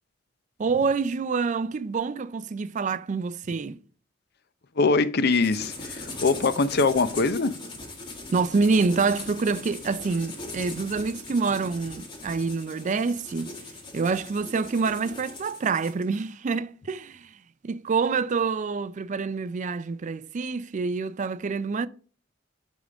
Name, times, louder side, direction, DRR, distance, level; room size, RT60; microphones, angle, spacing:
voice 1, 0.6-3.8 8.3-13.5 13.9-17.3 17.6-21.9, right 4 dB, 40° right, 0.4 m, -27 dB
voice 2, 4.8-7.5, left 3 dB, 55° left, 0.6 m, -23 dB
sound 1, 5.3-16.0, left 2 dB, 25° left, 1.9 m, -40 dB
9.8 x 3.7 x 5.0 m
head